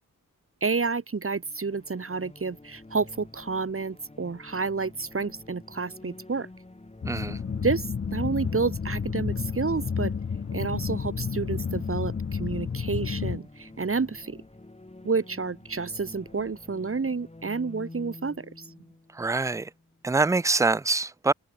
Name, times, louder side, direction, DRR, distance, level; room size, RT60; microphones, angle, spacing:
voice 1, 0.6-6.5 7.6-10.1 10.5-14.4 15.0-18.7, right 4 dB, 40° right, 2.1 m, -30 dB
sound 1, 1.4-20.0, left 2 dB, 20° left, 6.5 m, -48 dB
sound 2, 7.0-13.4, left 6 dB, 40° left, 0.7 m, -31 dB
voice 2, 7.0-7.4 19.1-19.7 20.0-21.3, right 3 dB, 10° right, 0.3 m, -25 dB
wide cardioid pair, 135°, 33 cm